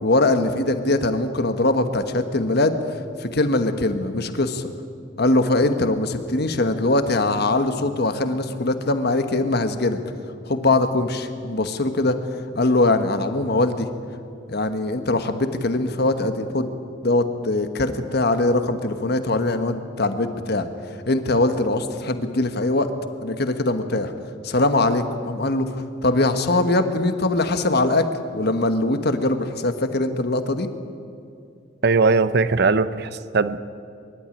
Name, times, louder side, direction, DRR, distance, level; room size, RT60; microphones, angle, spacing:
voice 1, 0.0-2.8 3.2-4.7 5.2-10.0 10.5-12.2 12.5-13.9 14.5-16.8 17.0-20.7 21.1-22.9 23.2-24.1 24.4-25.7 26.0-30.7, left 2 dB, 55° left, 9 dB, 1.3 m, -22 dB
voice 2, 31.8-33.6, right 4 dB, 55° right, 14 dB, 0.8 m, -19 dB
23.5 x 12.5 x 10.0 m, 2.4 s
head